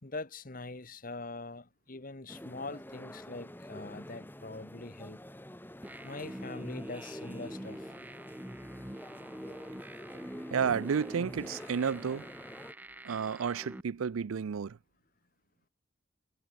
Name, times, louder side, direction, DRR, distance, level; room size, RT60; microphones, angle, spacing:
voice 1, 0.0-5.2 6.0-7.9, left 3 dB, 40° left, 1.2 m, -43 dB
sound 1, 2.3-12.7, left 1 dB, 10° left, 1.6 m, -48 dB
sound 2, 5.8-13.8, right 1 dB, 10° right, 0.8 m, -45 dB
voice 2, 10.5-12.3 13.0-14.8, right 6 dB, 85° right, 0.4 m, -31 dB
head